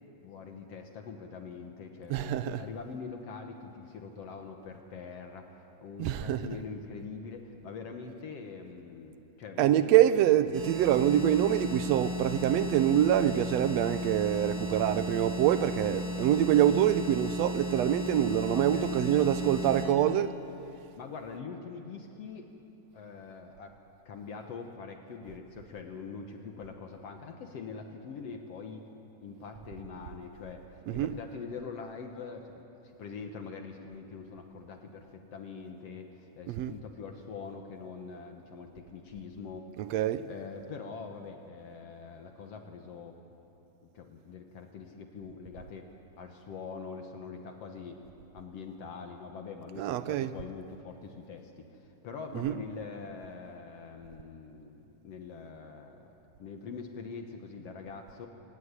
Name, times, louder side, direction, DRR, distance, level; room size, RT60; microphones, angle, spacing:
voice 1, 0.2-9.7 18.5-19.0 21.0-22.5 22.9-23.7 24.1-28.8 29.2-30.7 30.9-32.6 33.0-39.7 40.3-43.2 43.8-45.9 46.2-48.0 48.3-56.1 56.4-58.3, left 5 dB, 60° left, 2.1 m, -43 dB
voice 2, 2.1-2.6 6.0-6.6 9.6-20.3 30.9-31.2 36.5-36.7 39.8-40.2 49.8-50.3 52.3-52.6, right 11 dB, 75° right, 1.7 m, -25 dB
sound 1, 10.5-19.9, equal, 40° right, 4.8 m, -35 dB
24.5 x 17.0 x 9.7 m
omnidirectional pair, 3.4 m